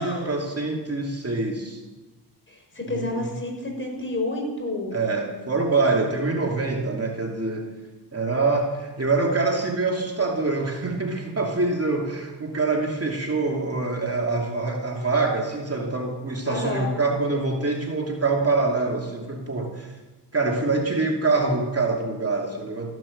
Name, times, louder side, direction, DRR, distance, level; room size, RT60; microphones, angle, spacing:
voice 1, 0.0-1.8 2.9-3.3 4.9-7.7 8.1-19.9 20.3-22.9, right 3 dB, 35° right, 0 dB, 2.8 m, -25 dB
voice 2, 2.5-5.0 16.5-16.9, left 2 dB, 25° left, 1 dB, 5.5 m, -30 dB
15.0 x 11.0 x 7.4 m, 1.1 s
cardioid pair, 60°, 43 cm